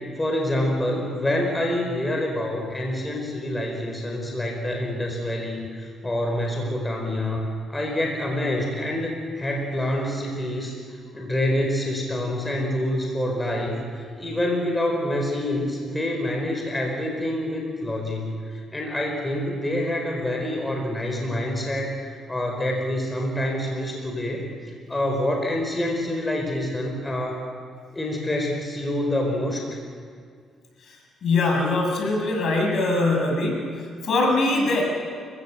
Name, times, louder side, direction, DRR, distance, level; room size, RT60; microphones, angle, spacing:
voice 1, 0.2-10.8 11.1-18.4 18.7-21.9 22.3-24.5 24.9-27.4 27.9-29.6, left 1 dB, 15° left, 1 dB, 4.8 m, -26 dB
voice 2, 31.2-34.8, left 2 dB, 60° left, 0 dB, 6.9 m, -22 dB
29.5 x 16.0 x 7.8 m, 2.1 s
cardioid pair, 90°, 0 cm